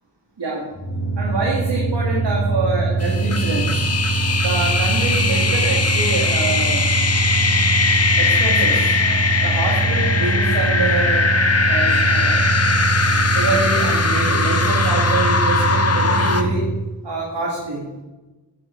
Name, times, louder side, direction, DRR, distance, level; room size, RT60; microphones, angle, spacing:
voice 1, 0.4-0.7 1.2-3.8 4.4-6.9 8.2-9.0 9.4-11.3 11.7-12.4 13.2-16.7 17.0-17.9, right 2 dB, 75° right, -2 dB, 2.1 m, -25 dB
sound 1, 0.7-16.8, right 3 dB, 20° left, 2.9 m, -22 dB
sound 2, 3.0-16.4, left 4 dB, 35° left, 1.0 m, -20 dB
10.0 x 7.4 x 4.5 m, 1.1 s
wide cardioid pair, 65°, 43 cm